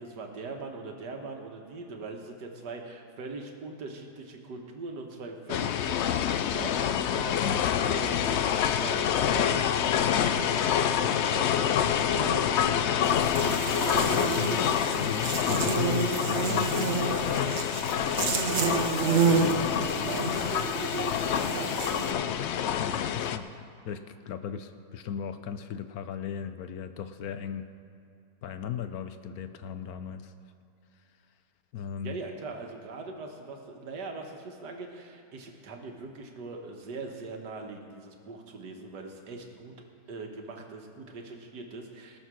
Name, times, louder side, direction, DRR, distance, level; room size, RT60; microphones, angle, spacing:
voice 1, 0.0-7.6 7.9-13.3 19.0-21.8 32.0-39.7 40.1-42.2, right 3 dB, 80° right, 3 dB, 1.9 m, -41 dB
sound 1, 5.5-23.4, left 9 dB, 85° left, 0.6 m, -27 dB
Buzz, 13.0-22.1, right 5 dB, 50° right, 1.0 m, -30 dB
voice 2, 14.1-17.6 22.4-27.6 28.4-30.3 31.7-32.2, left 8 dB, 70° left, 10 dB, 1.1 m, -37 dB
18.5 x 6.5 x 6.3 m, 2.7 s
omnidirectional pair, 1.8 m